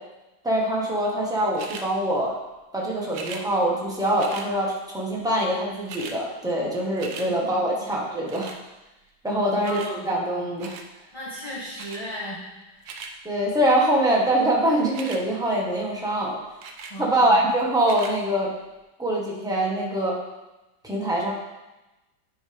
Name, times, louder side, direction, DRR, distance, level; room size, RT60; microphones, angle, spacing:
voice 1, 0.4-2.3 2.7-8.5 9.2-10.8 13.2-16.4 17.0-18.5 19.0-20.1 20.8-21.3, right 1 dB, ahead, -4 dB, 1.2 m, -24 dB
sound 1, 1.5-1.9 3.1-3.4 4.2-4.5 5.4-5.5 5.7-6.2 6.6-7.3 8.3-8.6 9.6-9.9 10.6-10.9 11.8-12.0 12.6-13.1 14.8-15.2 16.6-17.0 17.8-18.1 18.8-18.9, right 5 dB, 65° right, 1.1 m, -39 dB
voice 2, 7.2-7.9 9.3-10.1 11.1-13.0 16.9-17.4, equal, 20° left, -7 dB, 1.0 m, -37 dB
10.0 x 5.0 x 3.5 m, 1.0 s
omnidirectional pair, 1.9 m